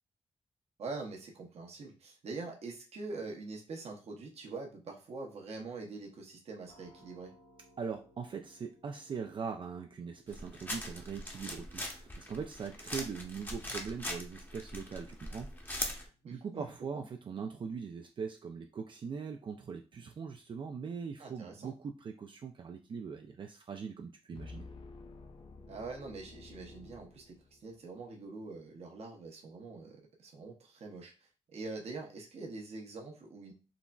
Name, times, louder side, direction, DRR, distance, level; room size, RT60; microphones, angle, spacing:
voice 1, 0.8-7.3 16.2-16.7 16.9-17.0 21.2-21.7 25.7-33.5, right 3 dB, 65° right, 1 dB, 0.8 m, -44 dB
sound 1, 6.6-18.2, left 1 dB, 75° left, 0.9 m, -67 dB
voice 2, 7.8-24.7, right 6 dB, 45° right, 4 dB, 0.3 m, -41 dB
sound 2, 10.3-16.1, left 1 dB, 15° left, 0.8 m, -41 dB
sound 3, 24.3-27.8, left 3 dB, 50° left, 0.5 m, -51 dB
3.8 x 2.0 x 2.3 m, 0.33 s
cardioid pair, 55°, 11 cm